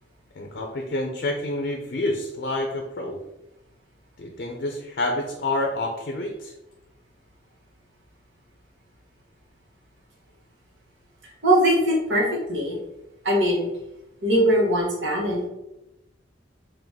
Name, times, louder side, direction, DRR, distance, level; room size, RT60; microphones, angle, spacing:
voice 1, 0.3-3.2 4.2-6.5, left 2 dB, 55° left, 3 dB, 0.5 m, -28 dB
voice 2, 11.4-12.8 13.2-13.7 14.2-15.5, equal, 70° right, -3 dB, 1.3 m, -21 dB
3.9 x 2.6 x 3.5 m, 0.92 s
head